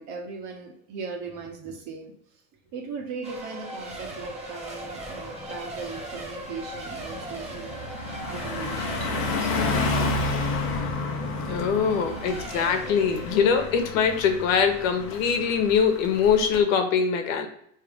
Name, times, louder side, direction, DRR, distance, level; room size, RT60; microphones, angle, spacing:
voice 1, 0.0-2.1 2.7-7.9 8.3-9.6 11.5-12.4, right 5 dB, 50° right, 1 dB, 1.4 m, -39 dB
Race car auto racing / Accelerating revving vroom / Mechanisms, 3.2-15.7, right 1 dB, 15° right, 1.0 m, -39 dB
Car passing by, 5.0-5.3 5.6-16.6, left 3 dB, 35° left, 0.9 m, -31 dB
voice 2, 11.5-17.5, left 6 dB, 80° left, 7 dB, 1.1 m, -23 dB
3.4 x 3.2 x 4.9 m, 0.70 s
supercardioid pair, 140°, 39 cm